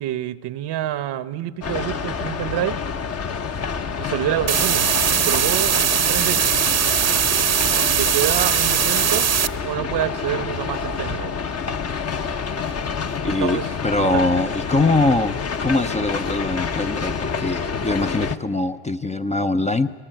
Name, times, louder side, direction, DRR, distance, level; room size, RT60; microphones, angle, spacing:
voice 1, 0.0-2.8 4.0-4.9 5.2-5.7 6.1-6.6 7.8-9.3 9.6-11.3 13.2-13.7 14.0-14.2, right 12 dB, 55° right, 16 dB, 1.0 m, -27 dB
sound 1, 1.6-18.4, left 5 dB, 30° left, 1.0 m, -28 dB
sound 2, 4.5-9.5, right 8 dB, 30° right, 0.9 m, -20 dB
voice 2, 13.2-19.9, left 2 dB, 15° left, 8 dB, 0.7 m, -22 dB
24.5 x 19.0 x 9.1 m, 1.5 s
supercardioid pair, 95°, 50 cm